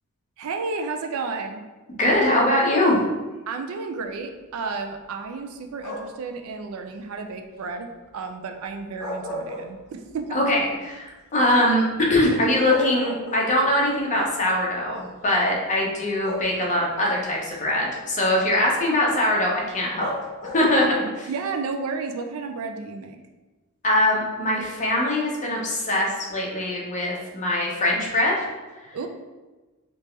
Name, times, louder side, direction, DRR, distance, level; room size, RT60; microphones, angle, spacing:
voice 1, 0.4-1.7 3.5-10.4 21.3-23.2 28.9-29.1, right 4 dB, 70° right, 5 dB, 0.4 m, -32 dB
voice 2, 2.0-3.0 10.3-20.1 20.4-21.3 23.8-28.4, left 1 dB, 35° left, -3 dB, 0.7 m, -22 dB
sound 1, 5.8-6.3 8.8-10.2 10.6-10.7 12.2-12.3 12.7-13.8 14.8-15.0 16.2-16.9 20.0-20.9, equal, 70° left, 0.7 m, -34 dB
3.4 x 2.9 x 3.2 m, 1.2 s
head